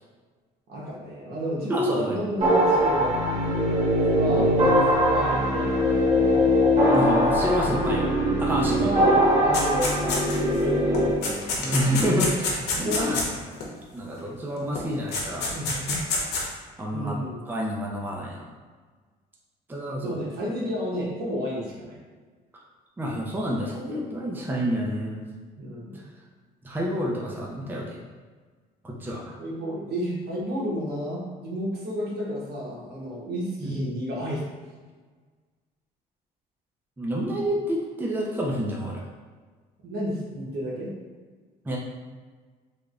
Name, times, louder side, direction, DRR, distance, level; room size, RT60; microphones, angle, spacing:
voice 1, 0.7-3.7 4.1-6.6 7.8-8.1 8.8-11.9 12.8-13.2 15.5-16.0 16.9-17.5 20.0-22.0 25.6-26.0 29.4-34.5 39.8-40.9, equal, 70° right, -4 dB, 1.1 m, -31 dB
voice 2, 1.7-2.1 4.3-4.5 6.9-8.0 8.4-8.9 11.6-13.3 13.9-15.5 16.8-17.2 17.5-18.5 19.7-20.2 22.5-22.6 23.0-25.2 26.6-28.0 28.8-29.3 33.6-33.7 37.0-39.1 41.6-41.8, equal, 10° right, -2 dB, 0.5 m, -28 dB
sound 1, 2.4-11.1, equal, 40° right, 1.1 m, -21 dB
sound 2, 9.5-10.6 10.9-13.7 14.8-14.9 15.1-16.4, left 3 dB, 80° left, 0.9 m, -27 dB
3.4 x 2.2 x 3.7 m, 1.4 s
cardioid pair, 110°, 17 cm